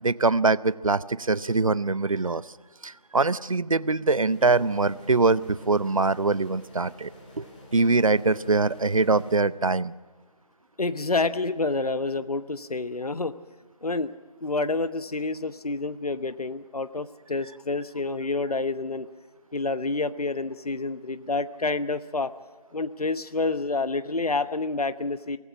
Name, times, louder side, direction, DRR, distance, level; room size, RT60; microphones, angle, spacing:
voice 1, 0.0-2.4 2.8-7.1 7.4-7.5 7.7-9.9, right 3 dB, 55° right, 19 dB, 0.7 m, -23 dB
sound 1, 4.2-9.4, left 1 dB, 15° left, 2.9 m, -48 dB
voice 2, 10.8-13.3 13.8-14.1 14.4-19.1 19.5-22.3 22.7-25.4, left 3 dB, 70° left, 13 dB, 1.0 m, -28 dB
23.5 x 18.5 x 6.2 m, 1.5 s
figure-of-eight pair, 170°, 20 cm